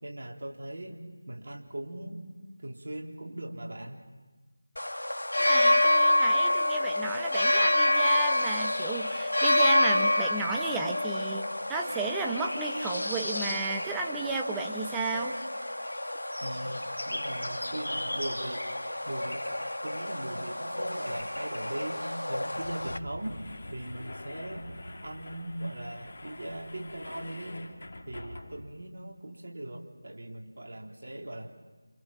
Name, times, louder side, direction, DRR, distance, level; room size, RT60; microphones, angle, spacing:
voice 1, 0.0-1.0 1.3-2.2 2.6-4.0 16.4-18.7 19.1-19.4 19.8-23.4 23.7-24.7 25.0-27.6 28.1-31.5, right 1 dB, 55° right, 1 dB, 3.6 m, -39 dB
sound 1, 4.8-23.0, left 1 dB, 75° left, 1.6 m, -28 dB
voice 2, 5.4-15.4, right 3 dB, 5° right, 1 dB, 1.0 m, -34 dB
sound 2, 22.4-28.8, left 1 dB, 45° left, 2.7 m, -45 dB
29.0 x 28.0 x 5.9 m, 1.3 s
figure-of-eight pair, 165°, 0 cm